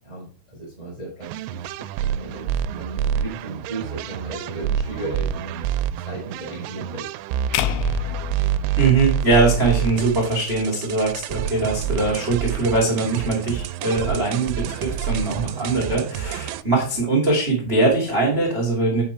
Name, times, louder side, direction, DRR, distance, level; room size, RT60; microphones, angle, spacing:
voice 1, 0.0-5.7 6.0-7.1, right 2 dB, 5° left, -5 dB, 3.8 m, -35 dB
sound 1, 1.2-16.6, right 10 dB, 85° right, 2.9 m, -28 dB
sound 2, 7.5-9.8, left 10 dB, 85° left, 2.8 m, -28 dB
voice 2, 8.8-19.0, right 3 dB, 25° right, -2 dB, 1.3 m, -21 dB
9.7 x 5.7 x 4.5 m, 0.39 s
omnidirectional pair, 5.6 m